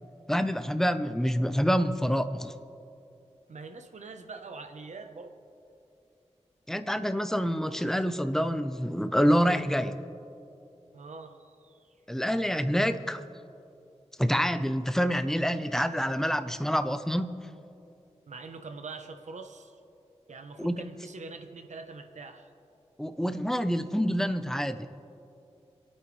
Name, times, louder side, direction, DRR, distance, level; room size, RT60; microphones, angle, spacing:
voice 1, 0.3-2.5 6.7-10.0 12.1-13.2 14.2-17.4 20.6-20.8 23.0-24.9, equal, 5° left, 10 dB, 0.8 m, -27 dB
voice 2, 3.5-5.4 10.9-11.9 18.3-19.8 20.3-22.5, right 4 dB, 85° right, 6 dB, 1.0 m, -44 dB
26.5 x 9.0 x 3.3 m, 2.7 s
cardioid pair, 40°, 12 cm